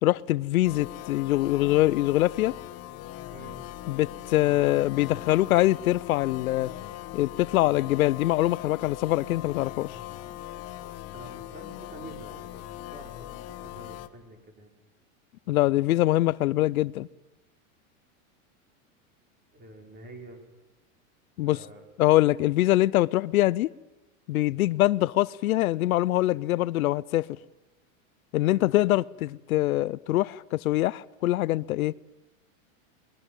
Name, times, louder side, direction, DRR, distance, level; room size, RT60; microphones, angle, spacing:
voice 1, 0.0-2.5 3.9-6.7 7.1-10.0 15.5-17.1 21.4-21.6 22.0-23.7 24.3-27.3 28.3-31.9, left 16 dB, 85° left, 0.7 m, -24 dB
sound 1, 0.6-14.1, left 14 dB, 35° left, 1.4 m, -40 dB
voice 2, 3.3-3.6 11.1-14.7 19.5-20.4 21.4-21.8 28.4-28.6, right 2 dB, 25° right, 5.5 m, -47 dB
22.0 x 20.5 x 9.1 m
supercardioid pair, 135°, 41 cm